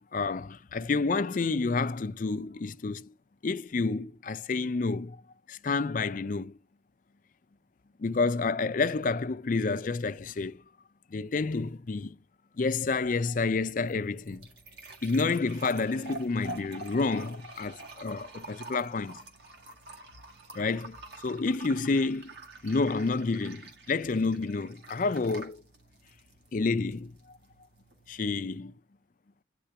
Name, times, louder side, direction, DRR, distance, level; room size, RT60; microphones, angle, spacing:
voice 1, 0.0-3.1 3.4-5.2 5.5-6.5 8.0-10.6 11.1-12.2 12.6-14.4 15.0-19.2 20.5-21.0 21.2-22.3 22.6-25.6 26.5-27.1 28.1-28.7, left 4 dB, 45° left, 0.4 m, -29 dB
sound 1, 13.6-28.5, right 2 dB, 55° right, 1.9 m, -47 dB
10.0 x 3.7 x 5.7 m
head